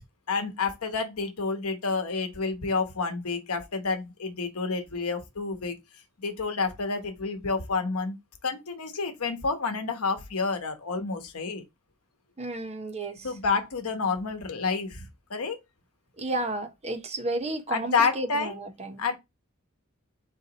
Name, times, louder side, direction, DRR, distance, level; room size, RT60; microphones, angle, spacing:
voice 1, 0.3-5.8 6.2-8.2 8.4-11.6 13.2-15.6 17.7-18.6 19.0-19.2, left 4 dB, 90° left, 0.9 m, -29 dB
voice 2, 12.4-13.3 16.2-19.0, right 2 dB, 30° right, 0.7 m, -32 dB
4.0 x 2.9 x 3.9 m
head